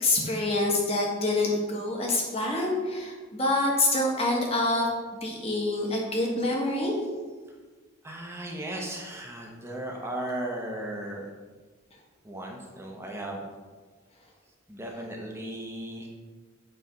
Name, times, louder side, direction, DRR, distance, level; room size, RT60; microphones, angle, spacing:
voice 1, 0.0-4.9 5.2-6.9, left 2 dB, 30° left, -1 dB, 1.2 m, -26 dB
voice 2, 8.0-11.3 12.2-13.4 14.7-16.1, right 1 dB, 10° right, -1 dB, 0.7 m, -36 dB
7.8 x 3.3 x 5.0 m, 1.4 s
head